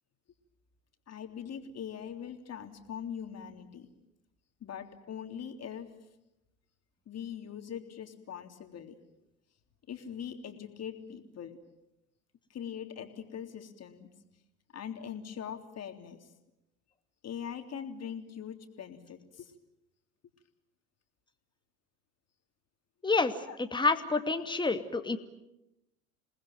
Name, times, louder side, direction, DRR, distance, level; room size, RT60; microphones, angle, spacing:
voice 1, 1.1-3.9 4.6-5.9 7.1-9.0 9.9-11.6 12.5-14.1 14.7-16.3 17.2-19.5 23.5-23.6, left 8 dB, 40° left, 6 dB, 3.5 m, -42 dB
voice 2, 23.0-25.2, left 3 dB, 10° left, 7 dB, 2.4 m, -29 dB
28.5 x 20.0 x 9.3 m, 0.89 s
hypercardioid pair, 75°, 41 cm